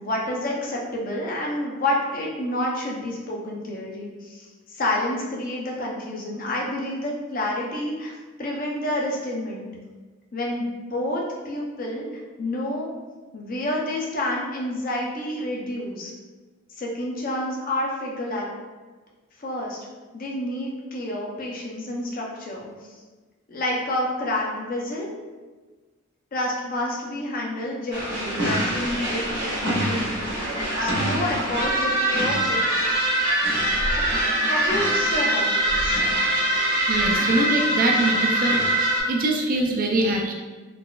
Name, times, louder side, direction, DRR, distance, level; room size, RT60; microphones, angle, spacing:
voice 1, 0.0-8.1 8.4-9.7 10.3-12.1 12.4-12.9 13.3-16.1 16.7-18.5 19.4-19.8 20.1-22.7 23.5-25.1 26.3-32.8 33.9-34.1 34.4-36.0, left 1 dB, 45° left, -2 dB, 0.6 m, -29 dB
sound 1, 27.9-39.0, right 1 dB, 70° right, 1.2 m, -23 dB
voice 2, 36.9-40.3, right 2 dB, 45° right, 0 dB, 0.4 m, -24 dB
3.8 x 2.4 x 2.3 m, 1.3 s
head